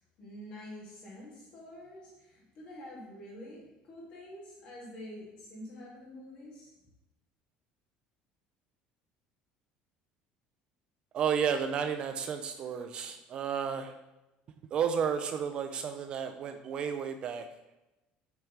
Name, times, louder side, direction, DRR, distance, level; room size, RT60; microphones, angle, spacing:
voice 1, 0.2-6.7, left 1 dB, 40° left, -4 dB, 2.4 m, -47 dB
voice 2, 11.1-13.9 14.7-17.5, right 7 dB, 30° right, 7 dB, 0.4 m, -32 dB
8.0 x 4.4 x 3.3 m, 0.99 s
cardioid pair, 180°, 3 cm